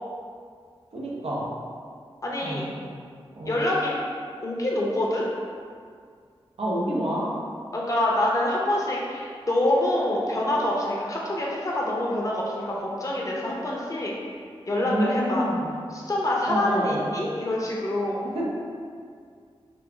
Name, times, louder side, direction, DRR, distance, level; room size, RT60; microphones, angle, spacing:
voice 1, 0.9-1.5 2.4-2.9 3.4-3.6 6.6-7.3 14.8-15.7 16.5-17.0 18.2-18.4, right 1 dB, 90° right, -5 dB, 0.9 m, -28 dB
voice 2, 2.2-2.7 3.4-3.9 4.4-5.3 7.7-14.1 14.7-15.5 15.9-18.3, left 1 dB, 35° left, -4 dB, 0.7 m, -26 dB
5.4 x 2.5 x 3.3 m, 2.1 s
wide cardioid pair, 85°, 10 cm